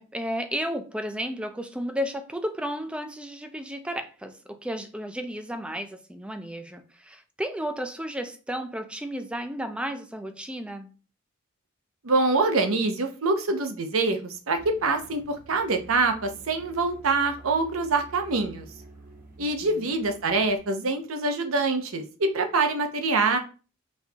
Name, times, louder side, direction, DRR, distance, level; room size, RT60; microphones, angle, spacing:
voice 1, 0.0-10.9 19.4-19.8, equal, 5° right, 0.4 m, -33 dB
voice 2, 12.0-18.7 19.4-23.4, right 3 dB, 80° right, 0.7 m, -25 dB
sound 1, 14.6-20.6, right 2 dB, 40° right, 1.1 m, -49 dB
4.3 x 3.4 x 2.8 m
head